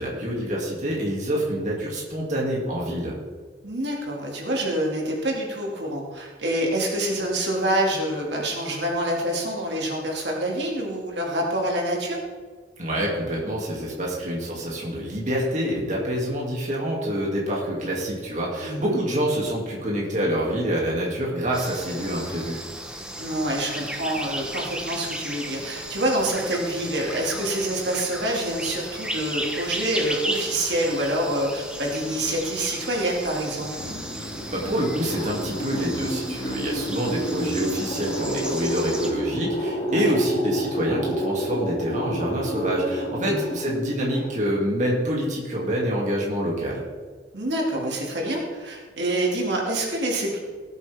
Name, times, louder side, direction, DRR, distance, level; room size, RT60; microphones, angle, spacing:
voice 1, 0.0-3.1 12.8-22.6 34.5-46.8, equal, 45° right, -3 dB, 2.6 m, -26 dB
voice 2, 3.6-12.2 18.6-19.0 23.2-33.7 39.9-40.2 43.2-43.5 47.3-50.4, right 1 dB, 80° right, -1 dB, 2.4 m, -26 dB
sound 1, 21.5-39.1, right 1 dB, 5° right, 1.1 m, -35 dB
sound 2, 33.6-44.7, equal, 35° left, 2.6 m, -30 dB
18.0 x 8.2 x 3.6 m, 1.5 s
head